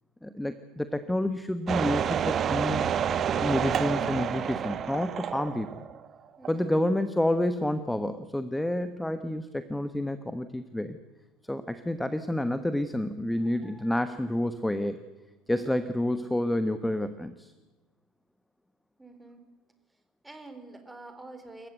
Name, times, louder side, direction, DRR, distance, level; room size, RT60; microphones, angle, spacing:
voice 1, 0.2-2.9 3.4-5.8 6.5-11.0 11.5-15.0 15.5-17.5, left 1 dB, 5° left, 11 dB, 1.1 m, -29 dB
sound 1, 1.7-6.1 6.4-6.5, right 8 dB, 40° right, 1.0 m, -29 dB
voice 2, 6.4-6.7 15.5-15.9 19.0-19.4 20.2-21.7, right 2 dB, 10° right, 7 dB, 3.9 m, -47 dB
28.0 x 15.0 x 8.1 m, 1.2 s
figure-of-eight pair, 70°, 0 cm